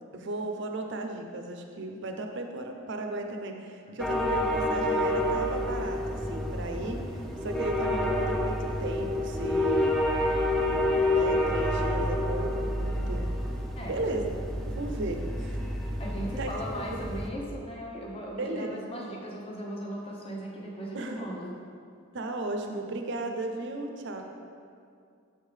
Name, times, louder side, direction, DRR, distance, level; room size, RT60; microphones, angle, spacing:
voice 1, 0.1-10.0 10.6-13.2 13.9-14.3 14.6-15.6 16.2-16.5 16.9-17.0 18.4-18.8 20.9-21.3 22.1-24.2, right 2 dB, 60° right, 4 dB, 0.6 m, -35 dB
sound 1, 4.0-17.3, left 1 dB, ahead, 0.3 m, -29 dB
voice 2, 16.0-21.6, equal, 25° left, -2 dB, 0.8 m, -38 dB
6.8 x 5.4 x 3.3 m, 2.3 s
head